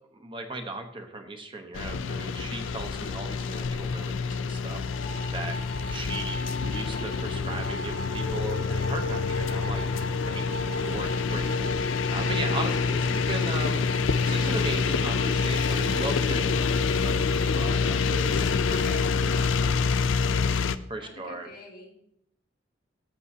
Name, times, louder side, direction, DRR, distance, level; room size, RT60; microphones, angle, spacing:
voice 1, 0.1-4.9 5.3-5.6 5.9-9.8 10.3-18.9 20.9-21.5, right 2 dB, 25° right, 5 dB, 0.9 m, -37 dB
sound 1, 1.7-20.8, left 5 dB, 85° left, 0.4 m, -27 dB
sound 2, 4.9-16.1, right 1 dB, 80° right, 1.8 m, -40 dB
voice 2, 5.9-6.7 12.6-13.0 16.3-17.7 18.7-20.3 21.0-21.9, left 2 dB, 50° left, 0 dB, 2.3 m, -46 dB
14.0 x 7.1 x 2.8 m, 0.72 s
head